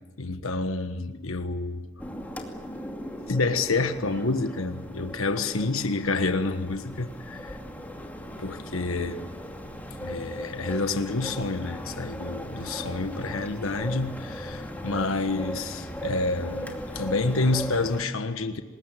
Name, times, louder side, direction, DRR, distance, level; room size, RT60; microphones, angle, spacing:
voice 1, 0.2-1.9 3.3-7.6 8.4-9.3 10.0-18.6, left 3 dB, 85° left, 1.4 m, -28 dB
sound 1, 2.0-18.0, equal, 10° left, 2.6 m, -38 dB
25.5 x 21.0 x 9.3 m
head